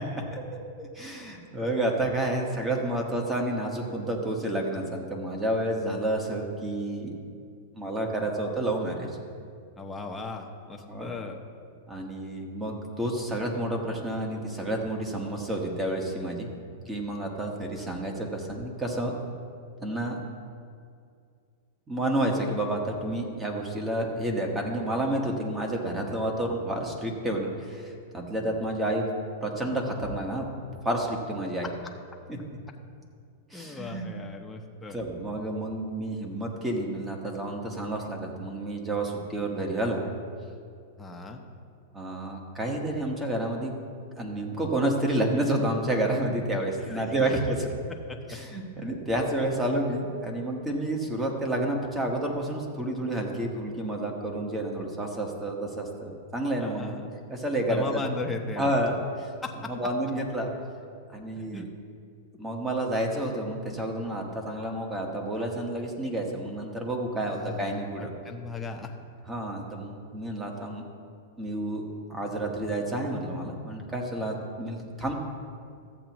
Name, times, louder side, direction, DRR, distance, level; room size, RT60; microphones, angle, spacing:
voice 1, 0.3-7.1 7.7-9.1 10.9-11.1 11.9-16.5 16.9-19.1 19.8-20.2 21.9-29.1 29.4-30.4 30.8-31.7 33.5-34.1 34.9-40.1 41.9-43.7 44.2-47.5 48.3-56.9 57.3-58.0 58.6-59.3 59.7-60.5 61.1-61.6 62.4-68.1 69.3-70.8 71.4-71.8 72.1-75.1, right 1 dB, 15° right, 1 dB, 1.4 m, -30 dB
voice 2, 9.8-11.4 33.5-35.0 41.0-41.4 46.8-47.1 48.1-48.2 56.6-57.1 57.7-58.7 59.4-59.5 61.5-61.7 67.3-67.8 68.2-68.9, left 3 dB, 10° left, 1 dB, 0.9 m, -37 dB
14.0 x 8.2 x 3.0 m, 2.3 s
supercardioid pair, 140°, 0 cm